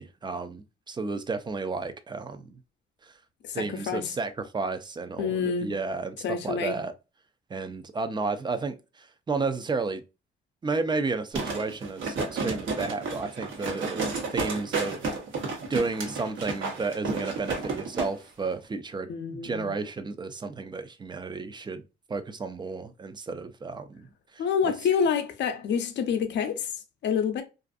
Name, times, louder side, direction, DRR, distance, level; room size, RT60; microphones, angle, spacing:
voice 1, 0.0-2.6 3.0-3.1 3.5-6.9 7.5-10.0 10.6-15.0 15.7-21.8 22.1-24.1 24.3-24.4, right 4 dB, 20° right, 0.4 m, -32 dB
voice 2, 3.4-4.2 5.2-5.7 6.2-6.8 19.1-19.7 24.4-27.4, left 6 dB, 65° left, 0.5 m, -28 dB
sound 1, 11.3-18.1 18.4-18.5, right 4 dB, 75° right, 1.0 m, -31 dB
2.5 x 2.4 x 2.3 m
cardioid pair, 90°, 20 cm